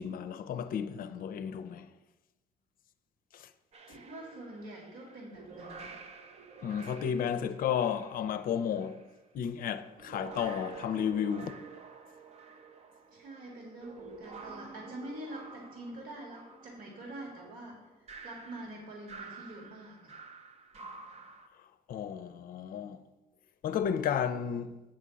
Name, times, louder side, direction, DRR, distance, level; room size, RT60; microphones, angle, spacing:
voice 1, 0.0-1.9 3.3-3.5 6.6-9.0 9.3-11.6 21.9-23.0 23.6-24.7, left 8 dB, 55° left, 0.5 m, -33 dB
sound 1, 3.7-9.1 9.8-21.5, right 4 dB, 40° right, 0.7 m, -50 dB
voice 2, 3.9-5.9 13.1-20.1, right 1 dB, 55° right, 1.9 m, -45 dB
8.8 x 3.7 x 6.9 m
cardioid pair, 110°, 17 cm